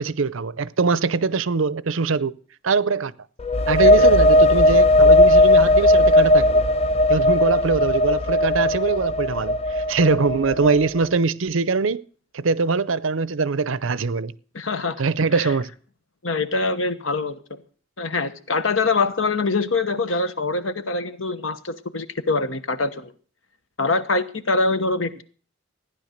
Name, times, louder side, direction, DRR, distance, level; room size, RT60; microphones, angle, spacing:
voice 1, 0.0-2.3 2.6-3.1 3.7-6.7 7.1-12.0 12.3-14.3 15.0-15.7, right 4 dB, 65° right, 0.6 m, -22 dB
sound 1, 3.4-11.0, left 1 dB, 30° left, 0.6 m, -17 dB
voice 2, 14.5-15.0 15.4-15.5 16.2-17.6 18.0-23.1 23.8-25.2, left 3 dB, 65° left, 1.1 m, -24 dB
15.0 x 10.0 x 6.6 m
head